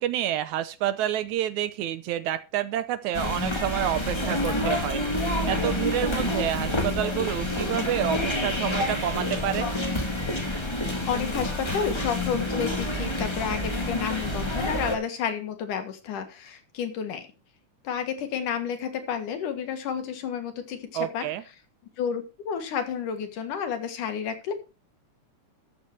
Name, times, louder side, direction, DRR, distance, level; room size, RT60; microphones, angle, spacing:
voice 1, 0.0-5.0 5.5-9.7 20.9-21.4, right 12 dB, 75° right, 14 dB, 2.1 m, -28 dB
sound 1, 3.1-15.0, left 1 dB, 10° left, 1.7 m, -28 dB
voice 2, 11.1-17.3 17.8-20.8 21.1-21.3 22.0-24.5, left 7 dB, 75° left, 8 dB, 3.2 m, -30 dB
13.5 x 7.6 x 4.6 m, 0.30 s
omnidirectional pair, 3.6 m